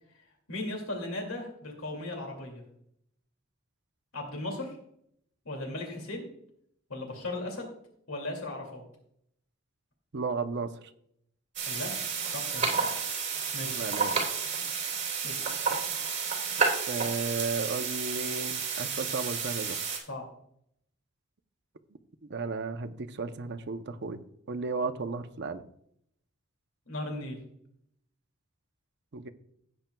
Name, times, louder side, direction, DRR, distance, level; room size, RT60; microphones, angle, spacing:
voice 1, 0.5-2.6 4.1-4.7 5.4-6.3 6.9-7.7 8.1-8.8 11.6-11.9 12.3-12.7 13.5-13.8 15.2-15.4 20.1-20.2 26.9-27.4, left 2 dB, 85° left, 1 dB, 2.4 m, -36 dB
voice 2, 10.1-10.7 13.6-14.2 16.9-19.8 22.2-24.2 24.5-25.6 29.1-29.3, right 4 dB, 55° right, 8 dB, 0.7 m, -34 dB
sound 1, 11.6-20.0, right 5 dB, 40° right, 3.5 m, -31 dB
16.0 x 8.9 x 2.3 m, 0.72 s
head